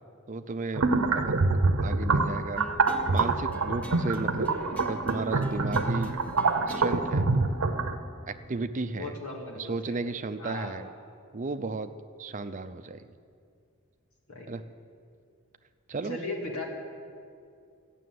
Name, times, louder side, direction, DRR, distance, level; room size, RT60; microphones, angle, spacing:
voice 1, 0.3-1.4 1.8-2.6 3.1-6.2 6.7-7.3 8.3-9.2 9.5-10.9 11.3-11.9 12.2-13.1 14.5-14.6 15.9-16.2, right 3 dB, 35° right, 10 dB, 0.5 m, -34 dB
sound 1, 0.7-8.0, right 3 dB, 85° right, 0.8 m, -26 dB
sound 2, 2.6-9.0, equal, 5° left, 0.8 m, -44 dB
voice 2, 4.5-4.8 8.9-10.0 10.4-10.8 14.3-14.5 16.0-16.6, left 2 dB, 85° left, -1 dB, 2.4 m, -37 dB
14.0 x 6.9 x 9.3 m, 2.4 s
head